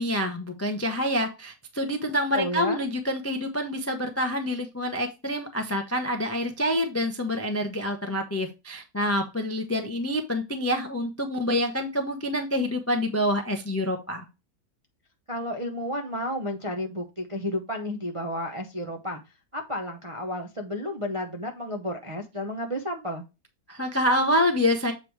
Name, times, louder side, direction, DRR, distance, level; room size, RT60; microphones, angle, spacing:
voice 1, 0.0-14.2 23.7-24.9, left 1 dB, 20° left, 5 dB, 0.3 m, -27 dB
voice 2, 2.3-2.8 15.3-19.2 19.5-23.2, left 1 dB, 35° right, 2 dB, 0.5 m, -32 dB
7.7 x 3.2 x 4.5 m, 0.26 s
omnidirectional pair, 1.8 m